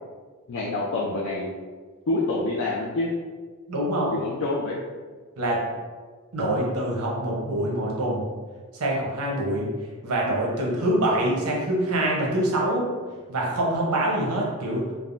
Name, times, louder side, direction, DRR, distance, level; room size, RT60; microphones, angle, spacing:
voice 1, 0.5-1.5 2.1-3.1 4.1-4.8, left 2 dB, 65° left, -5 dB, 0.4 m, -27 dB
voice 2, 3.7-4.1 5.4-5.6 6.3-8.2 8.7-9.7 10.0-12.9 13.3-14.9, right 1 dB, 85° right, -3 dB, 0.7 m, -25 dB
3.3 x 2.0 x 2.4 m, 1.4 s
head